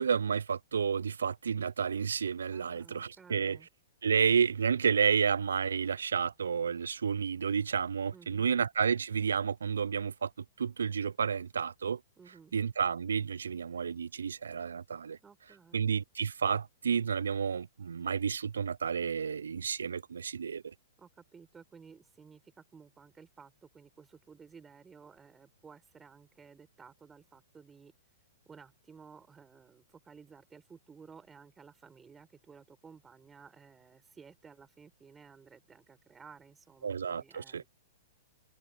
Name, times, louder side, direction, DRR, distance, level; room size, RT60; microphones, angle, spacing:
voice 1, 0.0-3.6 4.0-10.3 10.6-12.0 12.5-15.2 15.7-20.7 36.8-37.6, right 6 dB, 75° right, 0.6 m, -31 dB
voice 2, 2.5-3.7 8.1-8.5 12.2-12.5 15.2-15.8 21.0-27.9 28.5-37.7, right 5 dB, 15° right, 4.5 m, -55 dB
figure-of-eight pair, 110°, 0 cm